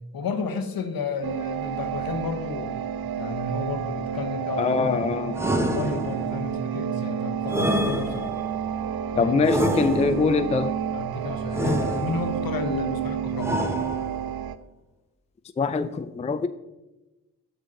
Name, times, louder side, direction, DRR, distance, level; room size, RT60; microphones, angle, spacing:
voice 1, 0.1-2.8 3.2-4.9 5.7-8.3 9.1-9.3 10.9-13.6, left 4 dB, 70° left, 1.0 m, -31 dB
sound 1, 1.2-14.6, right 9 dB, 75° right, 0.5 m, -30 dB
voice 2, 4.6-5.4 9.2-10.7 15.6-16.5, left 5 dB, 20° left, 0.4 m, -23 dB
sound 2, 5.4-6.4 7.5-8.5 9.4-10.4 11.5-12.4 13.4-14.3, equal, 5° right, 0.9 m, -28 dB
7.8 x 6.3 x 3.8 m
supercardioid pair, 45°, 37 cm